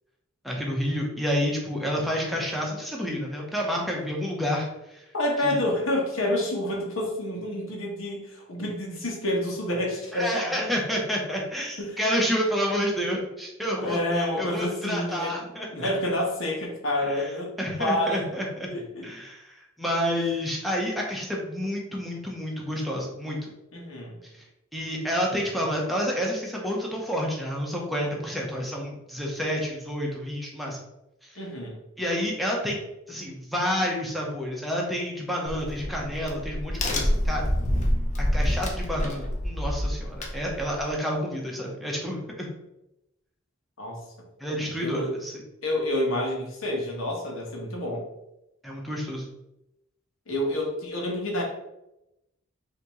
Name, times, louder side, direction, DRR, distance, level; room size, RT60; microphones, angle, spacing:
voice 1, 0.4-4.7 4.9-5.0 5.4-5.6 10.1-15.9 17.1-17.3 17.6-18.7 19.0-23.5 24.7-30.8 32.0-32.8 33.1-37.5 38.2-42.5 44.4-45.4 48.6-49.2, equal, ahead, -2 dB, 0.9 m, -29 dB
voice 2, 5.1-10.7 11.8-12.0 13.8-18.3 18.7-19.1 23.7-24.2 31.4-31.8 43.8-44.1 44.8-45.1 45.6-48.1 50.3-51.4, left 1 dB, 75° left, -1 dB, 1.3 m, -29 dB
Crack, 35.5-40.9, left 1 dB, 35° left, 0.7 m, -27 dB
5.9 x 2.9 x 3.1 m, 0.89 s
head